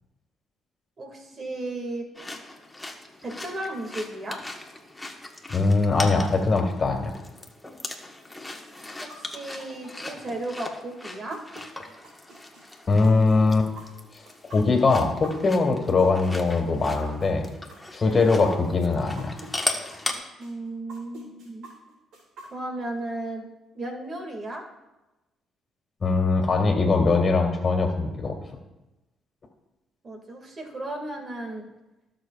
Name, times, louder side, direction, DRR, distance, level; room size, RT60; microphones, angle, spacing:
voice 1, 1.0-2.1 3.2-4.4 9.0-11.4 18.0-18.3 20.4-21.7 22.5-23.5 23.7-24.6 30.0-31.6, right 2 dB, 45° right, 2 dB, 2.2 m, -35 dB
sound 1, 2.1-20.1, left 2 dB, 10° left, 1.4 m, -38 dB
voice 2, 5.5-7.1 12.9-13.7 14.4-17.4 17.9-19.4 26.0-28.4, left 3 dB, 40° left, 3 dB, 2.0 m, -21 dB
sound 2, 8.7-19.5 19.9-22.9, right 2 dB, 70° right, 3.6 m, -46 dB
18.0 x 6.5 x 2.4 m, 1.0 s
supercardioid pair, 60°, 0 cm